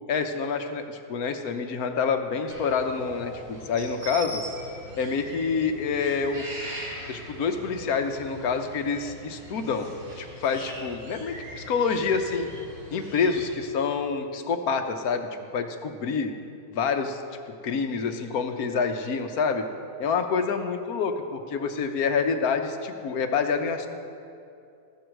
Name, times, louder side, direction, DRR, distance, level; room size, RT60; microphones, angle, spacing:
voice 1, 0.1-4.4 4.9-6.4 7.1-12.5 12.9-16.3 16.7-17.2 17.6-19.6 20.0-23.9, left 5 dB, 70° left, 6 dB, 1.3 m, -27 dB
sound 1, 2.5-13.5, equal, 65° right, 4.2 m, -41 dB
15.0 x 7.8 x 6.4 m, 2.6 s
omnidirectional pair, 1.7 m